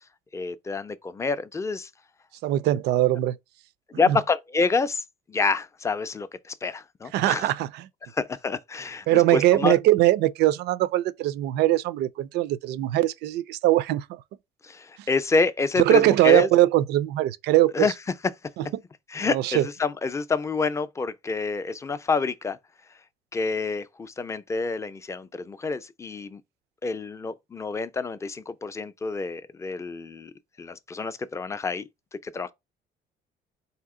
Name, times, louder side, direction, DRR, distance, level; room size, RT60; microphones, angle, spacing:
voice 1, 0.3-1.9 3.9-7.5 8.1-9.8 14.6-16.5 17.7-17.9 19.1-22.6 23.3-26.4 26.8-30.3 30.6-31.9 32.2-32.5, left 4 dB, 15° left, 0.4 m, -28 dB
voice 2, 2.4-3.3 4.1-4.2 7.1-7.8 9.1-14.2 15.9-17.9 19.3-19.7, right 15 dB, 80° right, 0.4 m, -21 dB
4.1 x 2.8 x 3.6 m
cardioid pair, 110°, 17 cm